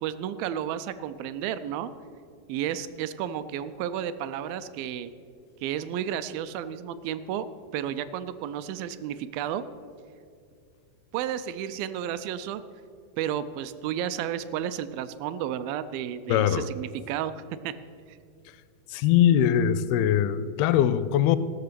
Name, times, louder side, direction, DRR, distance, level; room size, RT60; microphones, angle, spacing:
voice 1, 0.0-1.9 2.5-5.1 5.6-7.5 7.7-9.6 11.1-12.6 13.2-17.7 18.1-18.2, right 10 dB, 80° right, 13 dB, 2.1 m, -32 dB
voice 2, 16.3-16.7 18.9-21.4, left 10 dB, 85° left, 14 dB, 2.4 m, -22 dB
15.0 x 6.6 x 6.7 m, 2.3 s
omnidirectional pair, 4.4 m